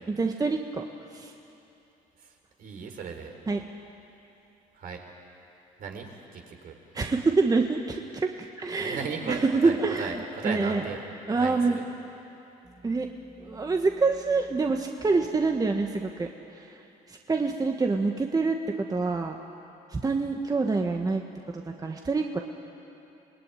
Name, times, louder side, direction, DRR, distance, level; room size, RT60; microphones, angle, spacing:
voice 1, 0.1-0.8 1.1-1.3 3.5-3.6 6.9-10.8 11.3-11.8 12.8-13.1 13.4-19.4 19.9-21.2 21.5-22.4, right 3 dB, 20° right, 3 dB, 1.5 m, -26 dB
voice 2, 2.2-3.3 4.7-5.0 5.8-7.1 8.8-11.0 11.4-11.9, right 5 dB, 60° right, 3 dB, 4.2 m, -37 dB
26.0 x 18.5 x 9.9 m, 2.9 s
supercardioid pair, 85°, 16 cm